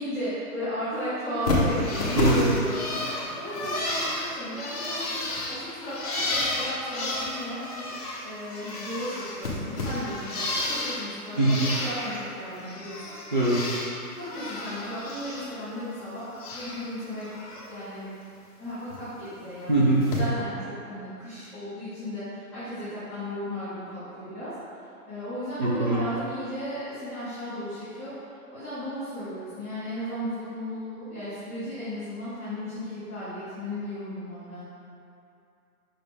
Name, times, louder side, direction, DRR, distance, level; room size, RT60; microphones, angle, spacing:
voice 1, 0.0-5.2 5.5-7.9 8.2-13.1 14.1-17.3 17.7-18.1 18.6-24.5 25.1-28.2 28.5-34.6, equal, 10° right, -20 dB, 1.6 m, -35 dB
Bird, 1.4-8.2 8.5-11.0 11.3-12.2 12.5-13.9 14.2-15.4 15.7-16.8 17.2-17.6 18.9-19.0 20.0-20.2, left 2 dB, 25° left, 0.9 m, -31 dB
voice 2, 19.7-20.0 25.6-26.0, right 2 dB, 30° right, -8 dB, 0.7 m, -22 dB
6.4 x 5.9 x 3.4 m, 2.6 s
hypercardioid pair, 175°, 45 cm